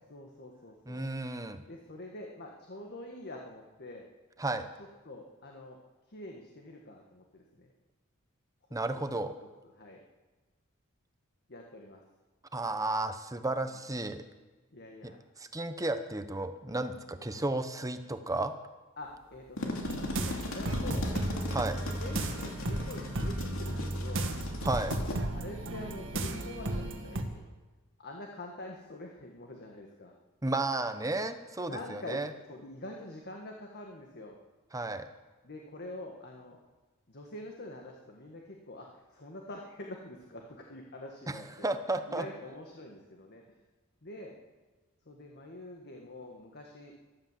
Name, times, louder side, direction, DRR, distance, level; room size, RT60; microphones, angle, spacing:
voice 1, 0.1-1.1 1.7-4.1 5.0-5.8 6.1-7.7 8.9-9.0 9.8-10.0 11.5-12.0 14.7-15.2 17.1-17.2 19.0-21.1 21.9-24.3 25.3-27.5 28.0-30.1 31.7-32.2 32.5-34.4 35.4-36.6 37.1-41.7 42.1-43.4 44.0-44.4 45.1-47.0, left 1 dB, 50° left, 1 dB, 1.7 m, -45 dB
voice 2, 0.9-1.6 4.4-4.7 8.7-9.3 12.5-14.2 15.0-15.1 15.4-18.5 21.5-21.8 24.6-25.0 30.4-32.3 34.7-35.1 41.3-42.3, right 2 dB, 15° right, 9 dB, 0.9 m, -33 dB
sound 1, 19.3-25.2, left 1 dB, 70° left, 2.8 m, -38 dB
sound 2, 19.8-27.2, right 1 dB, 65° right, 1.7 m, -34 dB
14.5 x 12.5 x 7.5 m, 1.2 s
head